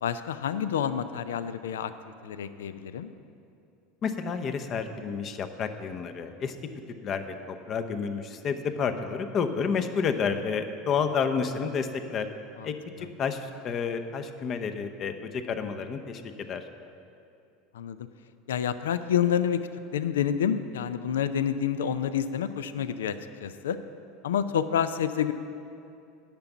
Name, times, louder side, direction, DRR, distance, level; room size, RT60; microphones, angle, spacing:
voice 1, 0.0-1.9 2.2-3.1 12.6-12.7 17.7-18.0 18.5-19.6 19.9-23.8 24.2-25.3, left 9 dB, 80° left, 12 dB, 0.4 m, -28 dB
voice 2, 4.0-6.6 7.0-12.3 12.6-16.6, left 6 dB, 45° left, 8 dB, 0.8 m, -30 dB
10.5 x 6.0 x 8.1 m, 2.6 s
hypercardioid pair, 85°, 0 cm